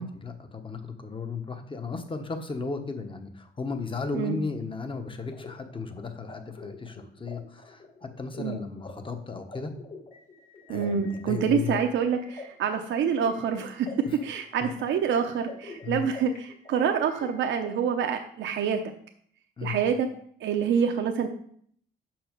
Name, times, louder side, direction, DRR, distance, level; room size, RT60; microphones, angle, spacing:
voice 1, 0.0-9.7 10.7-11.8 14.1-14.2 14.6-14.7 15.8-16.0 19.6-19.8, left 4 dB, 25° left, 7 dB, 1.1 m, -35 dB
sound 1, 4.9-17.7, left 3 dB, 45° left, 2.4 m, -47 dB
voice 2, 10.7-18.8 19.6-20.1 20.4-21.3, right 7 dB, 70° right, 5 dB, 0.7 m, -27 dB
6.3 x 5.9 x 5.2 m, 0.63 s
cardioid pair, 90°, 20 cm